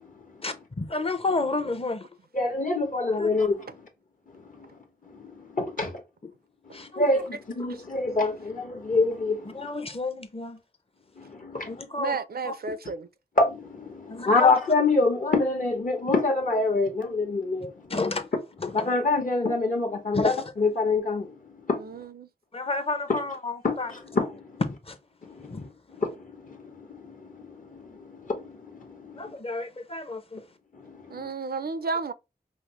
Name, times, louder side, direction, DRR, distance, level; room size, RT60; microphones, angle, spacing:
voice 1, 0.4-2.1 3.2-3.5 6.2-6.3 6.7-7.1 9.5-10.6 11.7-12.2 12.4-12.5 14.1-14.5 17.9-18.3 18.6-18.9 20.1-20.5 22.5-23.9 24.8-25.0 25.5-25.6 29.2-30.4, left 3 dB, 35° left, 0.8 m, -30 dB
voice 2, 2.3-3.7 4.3-4.4 5.1-6.0 6.7-9.7 11.2-11.8 13.4-17.9 18.7-21.4 21.7-21.8 23.1-23.2 23.6-24.6 25.2-25.7 26.0-29.4 30.7-31.3, left 3 dB, 55° left, 1.2 m, -26 dB
voice 3, 12.0-13.1 21.8-22.3 31.1-32.1, right 4 dB, 75° right, 0.5 m, -32 dB
5.0 x 2.1 x 3.0 m
wide cardioid pair, 70°, 16 cm